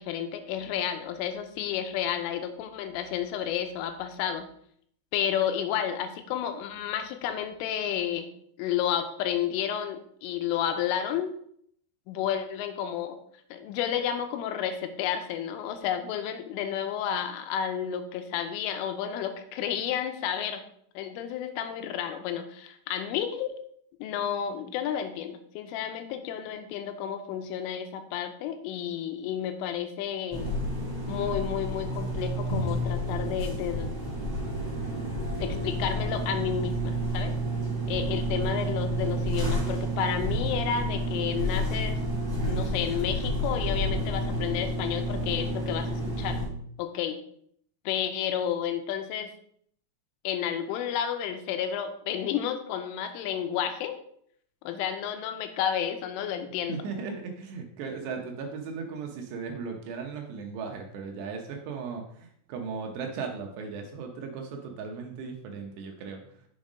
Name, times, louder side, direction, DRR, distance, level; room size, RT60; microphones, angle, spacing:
voice 1, 0.0-4.5 5.1-8.3 8.6-11.3 12.1-13.2 13.5-20.6 21.0-23.5 24.0-30.5 31.1-33.9 35.4-37.3 37.9-42.0 42.5-46.4 46.8-47.2 47.9-49.3 50.2-54.0 54.6-56.8, left 9 dB, 90° left, 7 dB, 3.4 m, -31 dB
sound 1, 30.3-46.5, equal, 15° right, 1.8 m, -30 dB
voice 2, 56.7-66.3, right 5 dB, 75° right, 2 dB, 2.7 m, -37 dB
7.1 x 5.6 x 5.0 m, 0.66 s
omnidirectional pair, 5.6 m